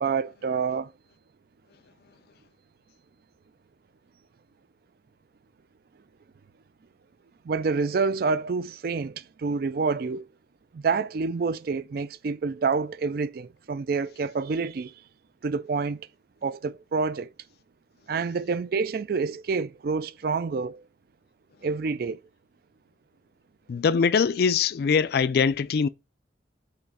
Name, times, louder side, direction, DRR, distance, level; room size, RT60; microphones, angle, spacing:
voice 1, 0.0-0.9 7.4-10.3 10.7-14.9 15.4-16.1 16.4-17.3 18.1-20.8 21.6-22.2, right 4 dB, 55° right, 0.4 m, -28 dB
voice 2, 23.7-25.9, left 6 dB, 60° left, 0.3 m, -22 dB
5.8 x 3.0 x 5.5 m
head